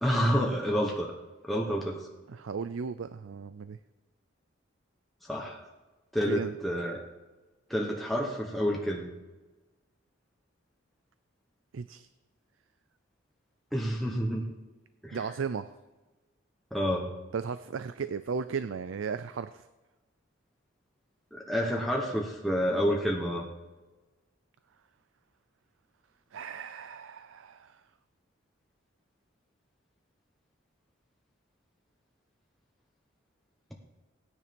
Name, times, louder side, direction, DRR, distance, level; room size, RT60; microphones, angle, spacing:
voice 1, 0.0-1.1 1.4-2.1 5.3-5.6 6.1-7.0 7.7-9.1 13.7-14.5 15.0-15.2 16.7-17.1 21.3-23.5, equal, ahead, -2 dB, 1.1 m, -29 dB
voice 2, 2.3-3.8 6.3-6.5 11.7-12.1 15.1-15.7 17.3-19.7 26.3-27.8, right 6 dB, 75° right, 13 dB, 0.4 m, -35 dB
16.5 x 9.7 x 5.3 m, 1.2 s
head